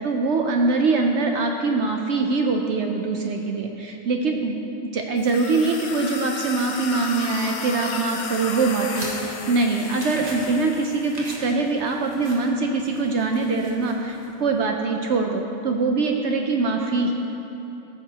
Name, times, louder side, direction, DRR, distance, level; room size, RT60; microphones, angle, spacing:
voice 1, 0.0-17.1, right 3 dB, 65° right, 3 dB, 0.7 m, -23 dB
sound 1, 5.2-11.1, left 4 dB, 75° left, 0.4 m, -33 dB
sound 2, 8.2-14.5, right 1 dB, 30° right, 1.3 m, -41 dB
14.5 x 6.8 x 2.8 m, 3.0 s
omnidirectional pair, 1.5 m